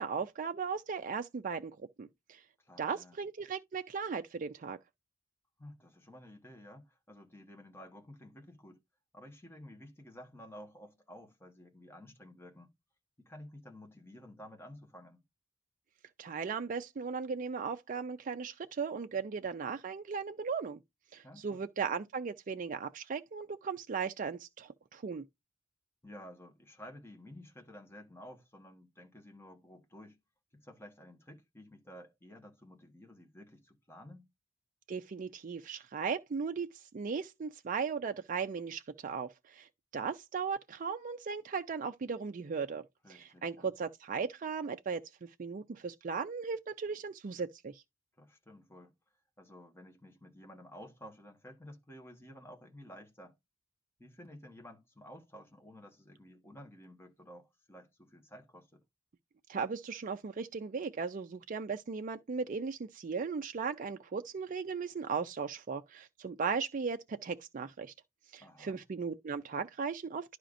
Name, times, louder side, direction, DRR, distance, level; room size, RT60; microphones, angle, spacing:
voice 1, 0.0-1.7 2.0-2.4 2.8-4.8 16.2-20.8 21.1-25.2 34.9-42.8 43.1-47.8 59.5-67.9 68.3-70.4, right 5 dB, 40° right, 0.4 m, -37 dB
voice 2, 2.6-3.2 5.6-8.8 9.1-12.7 13.2-15.2 21.2-21.6 26.0-30.2 30.5-34.3 43.0-43.7 48.2-49.0 49.4-53.3 54.0-58.8 68.4-68.8, left 1 dB, 15° left, 1.4 m, -52 dB
11.5 x 4.9 x 2.6 m
head